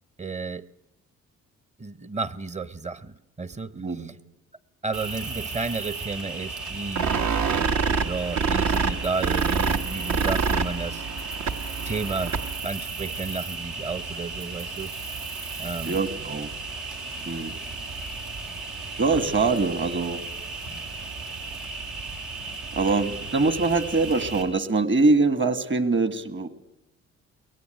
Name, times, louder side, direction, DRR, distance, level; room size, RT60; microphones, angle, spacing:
voice 1, 0.2-0.7 1.8-4.2 4.8-7.1 8.0-11.0 11.8-14.9 15.6-16.0, right 3 dB, 25° right, 18 dB, 0.8 m, -32 dB
voice 2, 3.7-4.1 15.9-16.5 17.3-17.5 19.0-20.2 22.8-26.5, right 3 dB, 40° right, 13 dB, 1.8 m, -23 dB
Cricket, 4.9-24.4, right 3 dB, 85° right, 4.0 m, -35 dB
sound 1, 7.0-12.7, right 5 dB, 70° right, 1.3 m, -26 dB
22.5 x 17.5 x 9.2 m, 0.94 s
cardioid pair, 90°, 30 cm